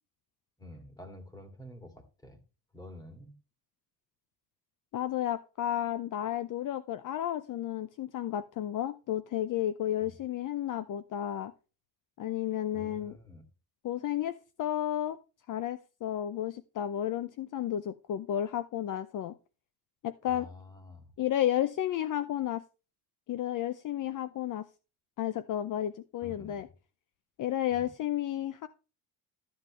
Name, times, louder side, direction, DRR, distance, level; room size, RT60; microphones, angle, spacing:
voice 1, 0.6-2.4 2.7-3.3 10.0-10.2 12.7-13.5 20.3-21.1 26.2-26.6 27.7-27.9, left 1 dB, 10° left, 5 dB, 2.2 m, -49 dB
voice 2, 4.9-11.5 12.2-13.2 13.8-15.2 15.5-19.3 20.0-20.5 21.2-22.6 23.3-24.7 25.2-26.7 27.4-28.7, left 11 dB, 50° left, 12 dB, 0.6 m, -32 dB
13.0 x 7.6 x 3.1 m, 0.32 s
cardioid pair, 135°, 40 cm